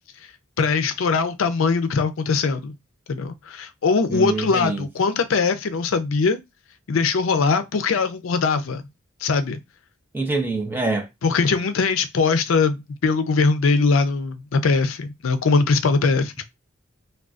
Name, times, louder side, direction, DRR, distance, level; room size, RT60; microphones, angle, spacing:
voice 1, 0.6-2.7 3.1-6.4 6.9-8.8 9.2-9.6 11.2-16.5, left 4 dB, 75° left, 0.5 m, -21 dB
voice 2, 4.1-4.8 10.1-11.1, right 3 dB, 10° right, 0.5 m, -25 dB
3.6 x 2.3 x 2.4 m
head